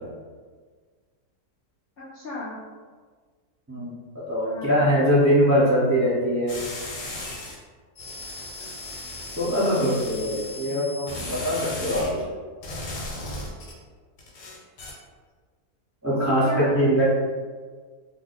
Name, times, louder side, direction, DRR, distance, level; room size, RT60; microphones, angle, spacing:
voice 1, 2.0-2.6 4.4-5.2 9.6-10.5 16.1-16.9, left 2 dB, 50° left, -10 dB, 0.7 m, -37 dB
voice 2, 4.3-6.6 9.4-12.2 16.0-17.0, equal, 20° right, -10 dB, 0.5 m, -22 dB
sound 1, 6.5-7.5 8.0-12.1 12.6-13.7 14.2-14.9, left 2 dB, 85° left, 1.3 m, -36 dB
2.7 x 2.1 x 3.9 m, 1.5 s
omnidirectional pair, 1.7 m